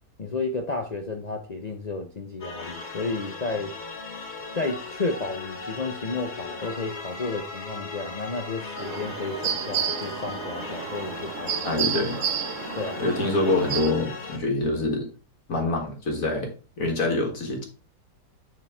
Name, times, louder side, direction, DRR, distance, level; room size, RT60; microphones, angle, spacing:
voice 1, 0.2-3.7 4.5-11.8 12.7-13.0, left 3 dB, 85° left, 0.3 m, -32 dB
sound 1, 2.4-14.4, left 4 dB, 30° left, 1.1 m, -37 dB
sound 2, 8.8-13.9, right 8 dB, 60° right, 0.9 m, -31 dB
voice 2, 11.6-12.2 13.0-15.1 15.5-16.5 16.8-17.6, left 2 dB, 50° left, 1.8 m, -25 dB
9.5 x 4.0 x 3.5 m
omnidirectional pair, 1.9 m